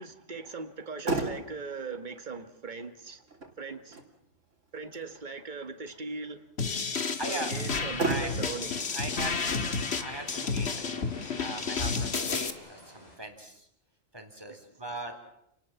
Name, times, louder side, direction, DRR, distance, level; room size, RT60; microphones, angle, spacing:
voice 1, 0.0-3.2 3.6-4.0 4.7-6.4 7.3-9.0 14.5-14.7, right 4 dB, 35° right, 2.0 m, -40 dB
Motor vehicle (road), 0.7-13.6, right 3 dB, 70° right, 3.6 m, -40 dB
sound 1, 6.6-12.5, left 4 dB, 55° left, 1.9 m, -31 dB
voice 2, 7.2-7.5 8.0-8.3 8.9-11.1 11.4-13.7 14.1-15.1, right 1 dB, 20° right, 3.7 m, -39 dB
sound 2, 7.8-13.2, equal, 30° left, 7.2 m, -49 dB
29.5 x 19.0 x 7.3 m
omnidirectional pair, 1.3 m